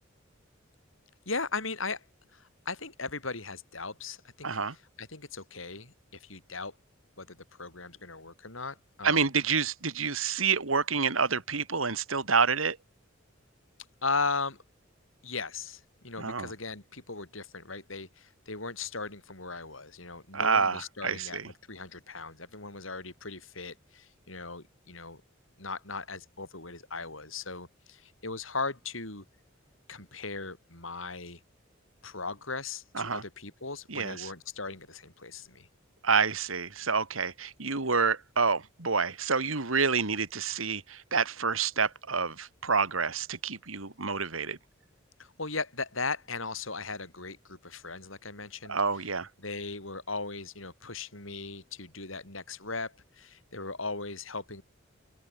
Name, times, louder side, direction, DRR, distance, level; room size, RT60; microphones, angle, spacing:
voice 1, 1.3-2.0 2.3-6.7 7.2-9.3 14.0-14.6 15.2-21.4 21.7-25.2 25.6-29.2 29.9-31.4 32.0-35.7 45.2-48.8 49.4-54.6, left 4 dB, 75° left, 7.9 m, -38 dB
voice 2, 4.4-4.7 9.0-12.8 16.2-16.5 20.3-21.5 32.9-33.2 33.9-34.3 36.0-44.6 48.7-49.3, right 5 dB, 90° right, 2.6 m, -28 dB
head